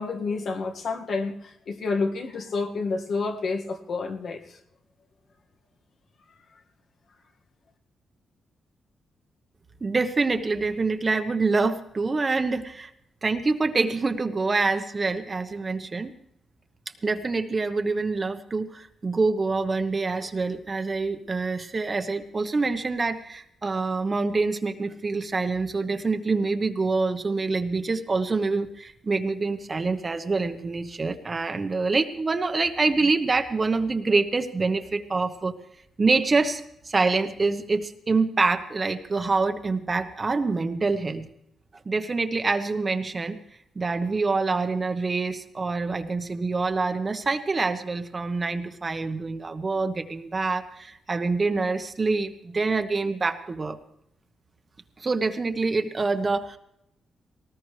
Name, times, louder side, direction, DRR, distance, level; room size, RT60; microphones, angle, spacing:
voice 1, 0.0-4.4, left 4 dB, 65° left, 3 dB, 1.9 m, -29 dB
voice 2, 9.8-12.9 13.2-16.1 17.0-35.6 36.0-41.3 41.8-43.4 43.7-53.8 55.0-56.6, right 3 dB, 30° right, 7 dB, 1.1 m, -26 dB
19.0 x 19.0 x 3.3 m, 0.77 s
cardioid pair, 100°, 0 cm